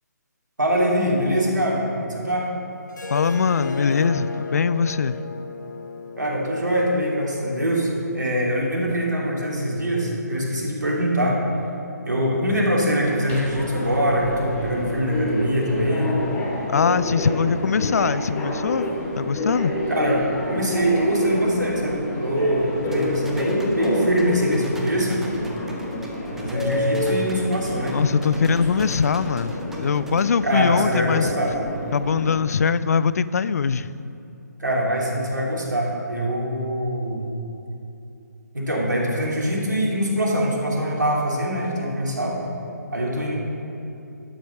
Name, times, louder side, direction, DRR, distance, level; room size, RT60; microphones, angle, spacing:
voice 1, 0.6-2.5 6.2-11.4 12.1-16.2 19.9-20.2 20.5-25.2 26.3-28.0 30.4-31.5 34.6-37.3 38.5-42.4 42.9-43.4, equal, 80° right, -3 dB, 2.5 m, -23 dB
Harp, 2.9-8.1, left 3 dB, 80° left, 1.0 m, -34 dB
voice 2, 3.1-5.2 16.7-19.7 27.9-31.3 31.9-33.9, left 6 dB, 60° left, 16 dB, 0.4 m, -22 dB
Subway metro underground, 13.0-32.4, left 1 dB, 15° left, 1.4 m, -28 dB
sound 1, 22.9-30.2, right 2 dB, 5° right, 0.7 m, -41 dB
12.0 x 6.0 x 5.4 m, 2.7 s
figure-of-eight pair, 145°, 10 cm